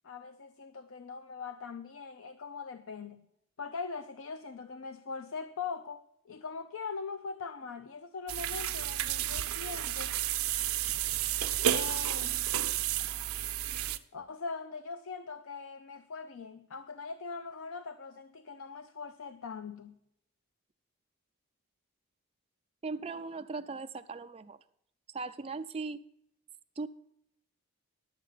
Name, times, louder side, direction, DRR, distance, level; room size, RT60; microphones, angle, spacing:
voice 1, 0.0-3.3 3.6-10.1 11.7-12.4 14.1-20.0, left 5 dB, 65° left, 10 dB, 0.5 m, -41 dB
sound 1, 8.3-14.0, right 11 dB, 80° right, 0.6 m, -31 dB
voice 2, 22.8-24.6 25.1-26.0 26.8-26.9, right 4 dB, 25° right, 8 dB, 0.4 m, -38 dB
11.5 x 7.4 x 5.6 m, 0.75 s
head